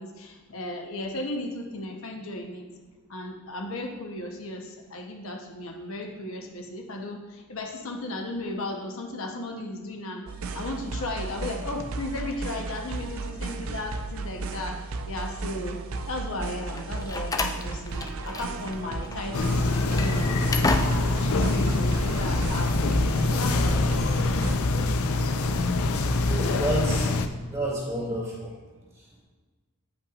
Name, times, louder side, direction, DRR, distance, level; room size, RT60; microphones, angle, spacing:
voice 1, 0.0-2.7 3.1-10.3 10.5-15.8 16.1-20.4 20.7-22.8 23.2-24.1, left 1 dB, 70° left, 2 dB, 0.9 m, -35 dB
sound 1, 10.3-24.6, right 3 dB, 75° right, 0.5 m, -35 dB
Slam, 16.7-18.8 19.0-19.2 19.7-21.3, left 2 dB, 15° left, 0.3 m, -30 dB
sound 2, 19.3-27.3, left 2 dB, 85° left, 0.5 m, -24 dB
voice 2, 26.2-27.1 27.5-28.5, right 1 dB, 15° right, -5 dB, 2.2 m, -30 dB
9.3 x 5.7 x 2.4 m, 1.3 s
head